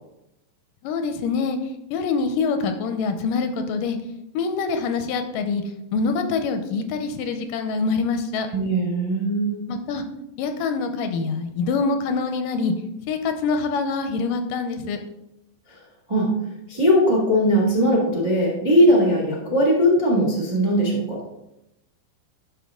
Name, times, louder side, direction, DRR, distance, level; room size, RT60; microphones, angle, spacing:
voice 1, 0.8-1.6 1.9-4.0 4.3-5.6 5.9-8.5 9.7-10.0 10.4-12.7 13.1-15.0, left 4 dB, 80° left, 7 dB, 2.2 m, -25 dB
voice 2, 8.5-9.6 16.1-16.3 16.7-21.2, equal, 15° right, -2 dB, 0.9 m, -19 dB
11.0 x 5.5 x 3.7 m, 0.87 s
omnidirectional pair, 4.0 m